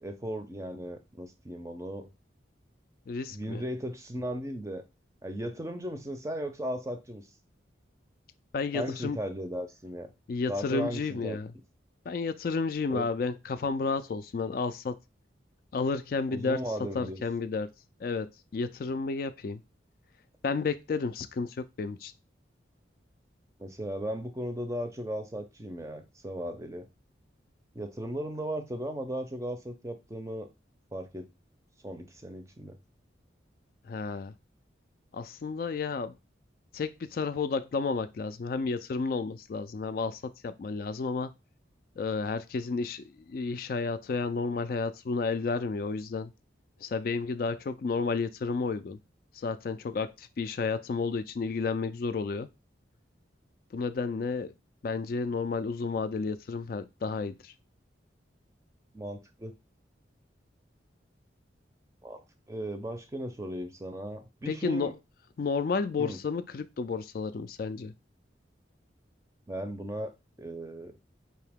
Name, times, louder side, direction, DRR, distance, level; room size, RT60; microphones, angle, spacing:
voice 1, 0.0-2.1 3.3-4.8 5.2-7.3 8.7-10.1 10.5-11.4 12.9-13.1 16.3-17.2 23.6-26.9 27.7-30.5 30.9-31.3 31.8-32.8 58.9-59.5 62.0-62.2 62.5-64.9 66.0-66.2 69.5-70.1 70.4-70.9, equal, 15° right, 0.5 m, -36 dB
voice 2, 3.1-3.6 8.5-9.2 10.3-11.5 12.1-15.0 15.7-17.7 18.0-19.6 20.4-22.1 33.8-34.3 35.1-36.2 36.7-41.3 42.0-46.3 46.8-49.0 49.3-52.5 53.7-54.5 54.8-57.5 64.5-64.9 65.4-67.9, left 4 dB, 50° left, 0.3 m, -31 dB
4.8 x 2.8 x 3.4 m
head